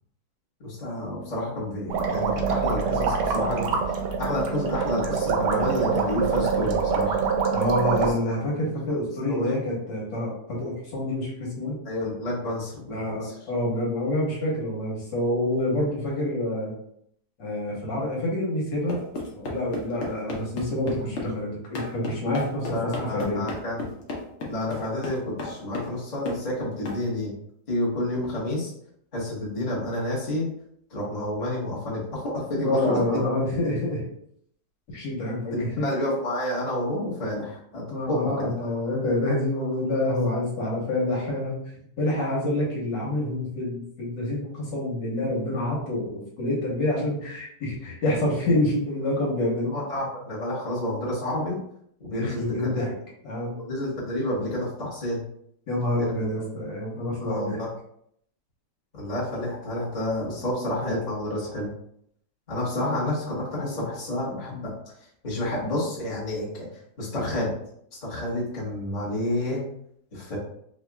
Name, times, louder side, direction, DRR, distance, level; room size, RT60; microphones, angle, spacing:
voice 1, 0.6-3.6 4.2-7.2 8.0-8.1 8.9-9.0 9.3-9.6 11.8-13.3 22.7-23.8 24.5-27.3 27.7-28.7 29.1-30.4 30.9-33.0 35.5-38.5 49.7-51.6 52.0-52.9 53.6-55.2 56.0-56.3 57.2-57.7 58.9-61.7 62.5-64.7 65.2-66.7 67.0-67.5 68.0-69.6 70.1-70.4, left 1 dB, 25° left, -7 dB, 1.3 m, -29 dB
sound 1, 1.9-8.1, right 5 dB, 75° right, 1.2 m, -25 dB
voice 2, 7.5-11.8 12.9-16.7 17.4-19.0 19.3-23.5 32.6-34.1 34.9-35.9 37.9-49.7 52.1-52.9 53.2-53.6 55.7-57.6, left 1 dB, 75° left, -4 dB, 1.8 m, -27 dB
sound 2, 18.9-21.3 21.7-26.0 26.3-26.4 26.9-27.0, left 2 dB, 55° left, 0.8 m, -34 dB
4.9 x 2.7 x 2.3 m, 0.70 s
omnidirectional pair, 2.0 m